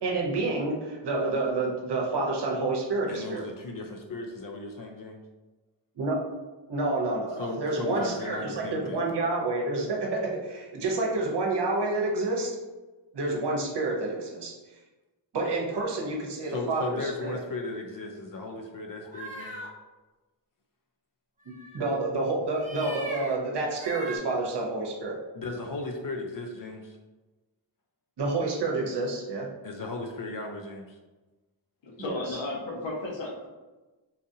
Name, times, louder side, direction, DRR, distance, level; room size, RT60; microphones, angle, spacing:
voice 1, 0.0-3.4 6.0-6.2 6.7-12.6 13.1-14.5 15.3-17.4 21.7-25.2 28.2-29.5 32.0-32.1, right 2 dB, 55° right, -2 dB, 0.9 m, -29 dB
voice 2, 3.1-5.2 7.4-9.0 16.5-19.5 25.3-27.0 29.6-31.0, left 2 dB, 45° left, 2 dB, 0.5 m, -36 dB
sound 1, 19.0-19.7 21.5-22.1 22.5-23.3 23.7-24.2, right 1 dB, 15° right, 0.8 m, -40 dB
voice 3, 31.8-33.5, left 2 dB, 65° left, -1 dB, 1.0 m, -34 dB
4.0 x 2.5 x 2.7 m, 1.2 s
cardioid pair, 85°, 48 cm